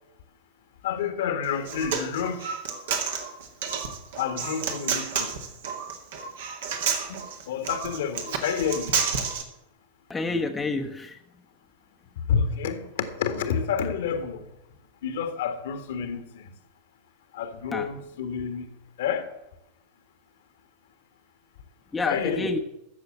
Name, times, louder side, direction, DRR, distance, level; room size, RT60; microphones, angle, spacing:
voice 1, 0.8-2.5 4.2-5.3 7.1-9.1 12.3-14.5 15.0-16.6 17.3-18.7 19.0-19.3 22.0-22.5, left 7 dB, 55° left, 1.6 m, -29 dB
Human voice, 1.4-9.4, right 6 dB, 60° right, 2.2 m, -30 dB
voice 2, 10.1-11.2 17.7-17.9 21.9-22.6, left 3 dB, 15° left, 1.1 m, -28 dB
14.5 x 7.0 x 8.7 m
figure-of-eight pair, 90°, 0 cm